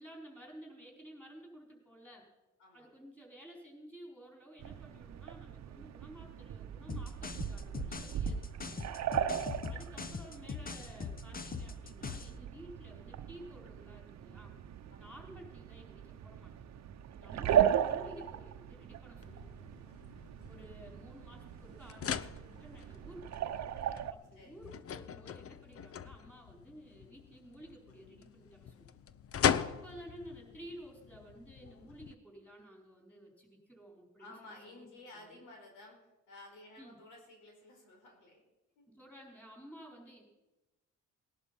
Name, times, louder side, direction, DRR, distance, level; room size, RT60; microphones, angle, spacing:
voice 1, 0.0-2.3 2.7-9.0 9.7-14.6 15.0-16.5 17.1-19.8 20.5-23.5 24.1-29.0 29.4-35.5 36.8-37.0 38.9-40.2, equal, 5° left, 0 dB, 4.8 m, -53 dB
sound 1, 4.6-24.1, right 9 dB, 60° right, 0.9 m, -37 dB
sound 2, 6.9-12.4, left 5 dB, 30° left, 1.1 m, -41 dB
sound 3, 19.2-32.1, left 8 dB, 50° left, 0.7 m, -40 dB
voice 2, 24.3-24.7 34.2-38.4 38.8-38.9, left 2 dB, 90° left, 2 dB, 4.3 m, -54 dB
18.5 x 11.5 x 5.5 m, 1.1 s
cardioid pair, 90°, 30 cm